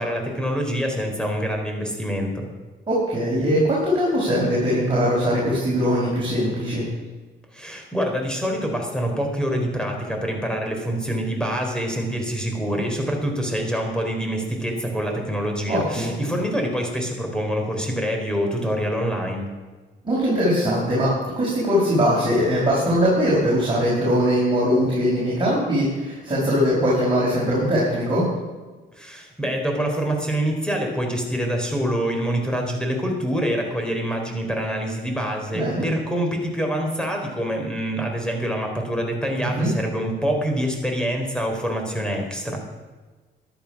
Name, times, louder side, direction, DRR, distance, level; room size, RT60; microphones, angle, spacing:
voice 1, 0.0-2.4 7.5-19.5 28.9-42.6, equal, 5° left, 2 dB, 4.1 m, -26 dB
voice 2, 2.9-6.9 15.7-16.1 20.0-28.2 35.5-35.8 39.4-39.7, equal, 25° right, -7 dB, 5.9 m, -21 dB
13.0 x 11.5 x 6.1 m, 1.3 s
cardioid pair, 90°, 20 cm